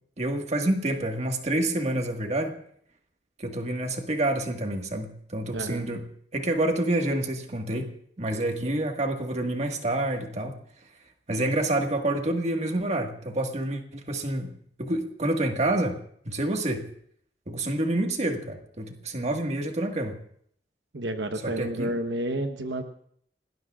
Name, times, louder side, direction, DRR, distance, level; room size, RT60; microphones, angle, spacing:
voice 1, 0.2-2.6 3.4-6.0 6.3-7.9 8.2-10.6 11.3-14.5 14.8-16.0 16.2-16.9 17.5-20.2 21.4-21.9, right 1 dB, 40° right, 3 dB, 1.7 m, -28 dB
voice 2, 5.5-5.8 8.6-8.8 20.9-22.8, right 1 dB, 75° right, 6 dB, 1.0 m, -30 dB
28.5 x 19.0 x 2.4 m, 0.64 s
head